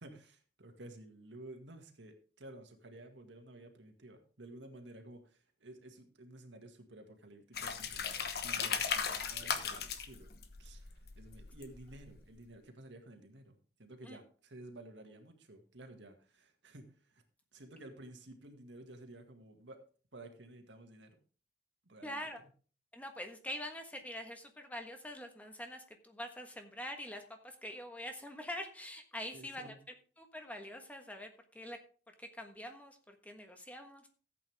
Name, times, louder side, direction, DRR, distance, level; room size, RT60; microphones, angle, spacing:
voice 1, 0.0-10.3 10.6-17.2 17.5-19.8 20.1-21.2 21.9-22.3 29.3-29.8, right 1 dB, 85° right, 5 dB, 2.0 m, -53 dB
sound 1, 7.5-12.2, left 6 dB, 55° left, 1.2 m, -37 dB
voice 2, 22.0-22.4 22.9-29.7 30.2-31.3 31.5-31.8 32.2-34.1, left 1 dB, 10° left, 5 dB, 1.3 m, -45 dB
14.0 x 8.4 x 3.5 m, 0.39 s
head